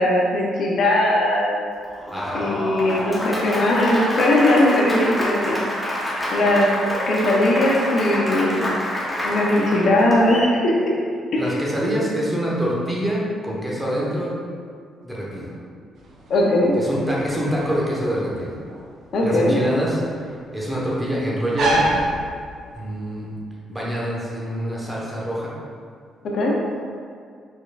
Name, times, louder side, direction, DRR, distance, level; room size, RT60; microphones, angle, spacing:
voice 1, 0.0-1.6 2.3-5.8 6.3-6.7 7.1-8.7 9.2-10.9 11.3-11.4 16.3-16.7 19.1-19.5 26.2-26.5, left 1 dB, 65° left, -2 dB, 0.7 m, -19 dB
Applause, 1.8-10.5, left 1 dB, 10° left, 1.1 m, -27 dB
voice 2, 2.1-2.5 11.4-14.3 15.0-15.5 16.8-18.6 19.2-20.0 20.5-21.9 22.7-23.3 23.7-25.5, equal, 10° right, -5 dB, 1.2 m, -25 dB
sound 1, 16.0-22.9, right 1 dB, 70° right, 0.8 m, -28 dB
4.6 x 4.5 x 2.5 m, 2.2 s
cardioid pair, 90°, 0 cm